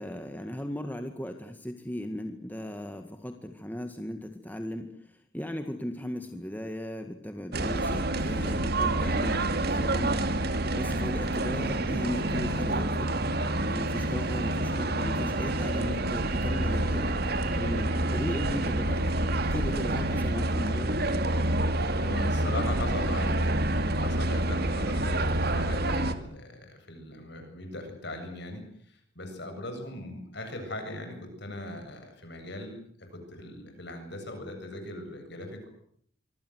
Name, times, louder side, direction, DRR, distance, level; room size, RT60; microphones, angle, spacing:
voice 1, 0.0-10.2 10.7-13.1 13.7-17.1 17.5-21.3, equal, 10° left, 6 dB, 1.9 m, -36 dB
sound 1, 7.5-26.1, right 1 dB, 50° right, 2.3 m, -28 dB
voice 2, 22.0-35.7, left 1 dB, 55° left, 6 dB, 7.9 m, -39 dB
25.5 x 24.0 x 8.1 m, 0.65 s
head